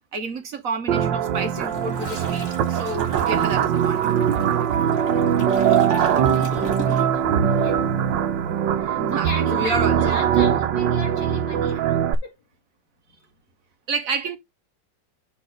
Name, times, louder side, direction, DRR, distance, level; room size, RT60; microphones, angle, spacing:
voice 1, 0.1-4.0 9.0-10.2 13.9-14.4, right 4 dB, 55° right, 1.2 m, -29 dB
sound 1, 0.9-12.1, right 9 dB, 90° right, 1.5 m, -21 dB
Toilet flush, 1.3-7.3 7.6-7.9, left 3 dB, 50° left, 1.8 m, -38 dB
voice 2, 5.4-7.8 8.7-12.0 12.2-12.4 13.1-13.2, left 2 dB, 75° left, 2.9 m, -37 dB
6.1 x 4.4 x 6.5 m
omnidirectional pair, 1.9 m